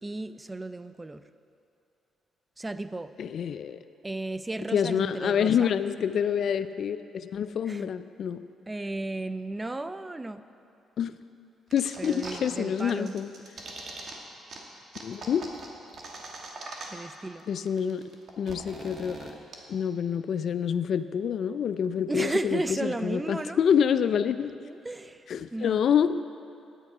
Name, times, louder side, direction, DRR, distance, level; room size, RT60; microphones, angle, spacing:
voice 1, 0.0-1.2 2.6-3.1 4.0-5.7 7.7-7.9 8.7-10.4 12.0-13.2 16.9-17.4 22.1-23.6 24.6-25.8, right 2 dB, 15° right, 12 dB, 0.4 m, -34 dB
voice 2, 3.2-3.8 4.7-8.4 11.0-11.1 11.7-13.3 15.0-15.5 17.5-18.0 18.4-19.2 19.7-24.6 25.3-26.1, left 8 dB, 60° left, 12 dB, 0.3 m, -27 dB
sound 1, 11.7-12.5 12.8-14.1 14.5-14.6 14.9-17.1 17.4-17.5 17.7-19.5, right 3 dB, 55° right, 1.4 m, -41 dB
10.0 x 8.2 x 4.8 m, 2.8 s
cardioid pair, 90°, 0 cm